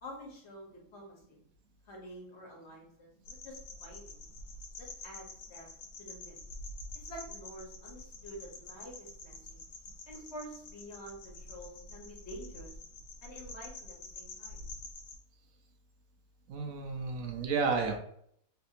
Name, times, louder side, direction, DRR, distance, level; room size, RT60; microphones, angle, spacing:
voice 1, 0.0-1.4 1.9-4.2 4.8-5.7 6.0-6.4 7.1-9.6 10.1-12.7 13.2-14.6, equal, 50° left, -2 dB, 1.2 m, -48 dB
sound 1, 3.3-15.2, left 2 dB, 90° left, 1.2 m, -47 dB
voice 2, 16.5-18.0, right 4 dB, 70° right, 4 dB, 1.0 m, -32 dB
3.3 x 2.7 x 2.7 m, 0.68 s
omnidirectional pair, 1.6 m